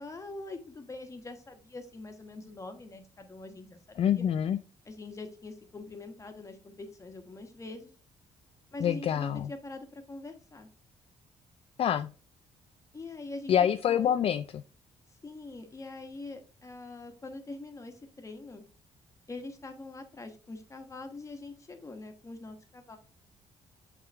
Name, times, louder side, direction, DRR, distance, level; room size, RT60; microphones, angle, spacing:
voice 1, 0.0-4.2 4.9-7.9 8.7-10.7 12.9-14.1 15.2-18.6 19.3-23.0, left 2 dB, 25° left, 6 dB, 1.3 m, -44 dB
voice 2, 4.0-4.6 8.8-9.5 11.8-12.1 13.5-14.6, left 9 dB, 50° left, 10 dB, 0.4 m, -26 dB
7.9 x 3.7 x 3.4 m, 0.38 s
cardioid pair, 105°, 13 cm